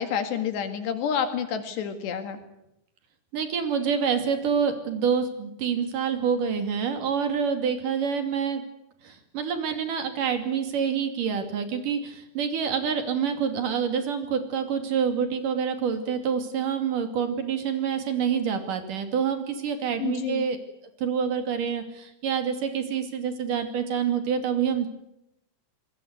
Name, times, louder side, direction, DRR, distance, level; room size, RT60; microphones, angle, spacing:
voice 1, 0.0-2.4 20.0-20.4, left 8 dB, 75° left, 8 dB, 4.0 m, -29 dB
voice 2, 3.3-8.6 9.0-20.6 21.0-24.9, right 7 dB, 55° right, 7 dB, 3.9 m, -27 dB
26.5 x 21.0 x 8.1 m, 0.83 s
omnidirectional pair, 5.0 m